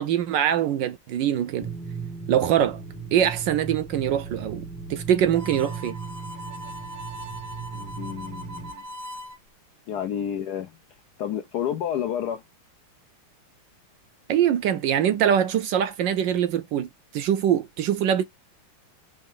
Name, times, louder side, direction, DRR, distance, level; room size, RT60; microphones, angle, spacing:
voice 1, 0.0-1.7 2.3-2.8 3.1-4.6 4.9-6.0 14.3-18.2, right 10 dB, 75° right, 1.1 m, -23 dB
sound 1, 1.6-8.7, right 5 dB, 5° left, 0.3 m, -37 dB
Harmonica, 5.3-9.4, equal, 55° right, 1.0 m, -40 dB
voice 2, 7.7-8.8 9.9-10.7 11.2-12.4, left 9 dB, 75° left, 0.9 m, -30 dB
5.2 x 2.5 x 3.6 m
omnidirectional pair, 2.3 m